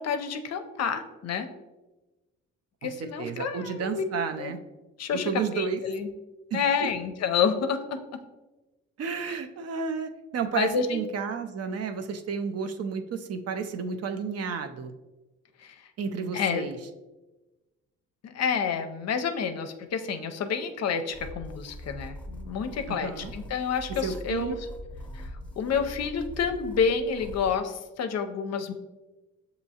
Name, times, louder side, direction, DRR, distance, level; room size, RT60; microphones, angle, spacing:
voice 1, 0.0-1.5 2.8-4.0 4.4-4.5 5.0-6.1 6.5-8.0 9.2-9.4 10.6-11.0 15.6-15.8 16.3-16.7 18.2-24.7 25.1-25.3 25.6-28.7, left 6 dB, 55° left, 8 dB, 0.5 m, -29 dB
voice 2, 3.2-4.6 5.1-5.8 6.5-6.9 9.0-14.9 16.0-16.8 22.9-23.3 24.0-24.6, right 6 dB, 50° right, 7 dB, 0.5 m, -32 dB
sound 1, 21.1-27.6, equal, 5° left, 0.8 m, -42 dB
6.8 x 2.7 x 2.8 m, 1.1 s
supercardioid pair, 70°, 32 cm